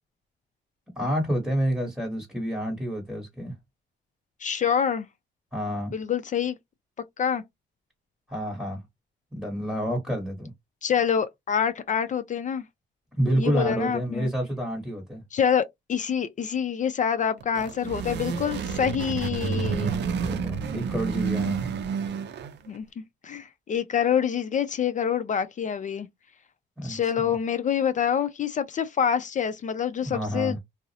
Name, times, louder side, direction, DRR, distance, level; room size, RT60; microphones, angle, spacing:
voice 1, 1.0-3.5 5.5-5.9 8.3-8.8 9.3-10.5 13.2-15.2 20.3-21.6 26.8-27.3 30.0-30.6, equal, 5° right, 1.2 m, -28 dB
voice 2, 4.4-5.1 5.9-6.6 7.2-7.4 10.8-12.6 13.4-14.3 15.3-20.0 22.7-26.1 26.8-30.6, left 8 dB, 40° left, 0.4 m, -26 dB
sound 1, 17.4-22.7, right 6 dB, 60° right, 0.5 m, -29 dB
2.4 x 2.0 x 2.7 m
cardioid pair, 90°, 20 cm